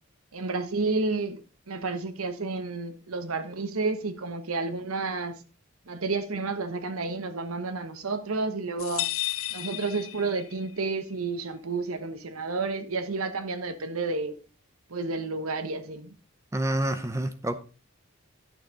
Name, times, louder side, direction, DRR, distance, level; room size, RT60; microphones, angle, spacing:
voice 1, 0.3-1.4 1.7-5.3 5.9-9.1 9.5-14.4 14.9-16.1, right 3 dB, 85° right, 1.1 m, -31 dB
sound 1, 8.8-10.7, left 16 dB, 75° left, 0.6 m, -33 dB
voice 2, 16.5-17.6, right 1 dB, 15° right, 0.6 m, -28 dB
11.5 x 6.5 x 3.8 m
head